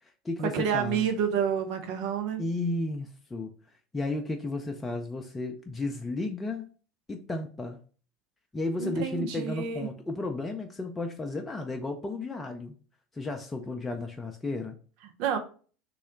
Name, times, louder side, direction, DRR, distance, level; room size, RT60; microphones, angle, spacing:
voice 1, 0.0-1.1 2.4-3.5 3.9-6.7 7.1-7.8 8.5-12.8 13.1-14.8, left 2 dB, 15° left, 3 dB, 0.4 m, -33 dB
voice 2, 0.5-2.4 8.8-9.9 15.2-15.4, right 7 dB, 55° right, 6 dB, 0.6 m, -29 dB
3.1 x 2.8 x 3.8 m, 0.40 s
figure-of-eight pair, 70°, 0 cm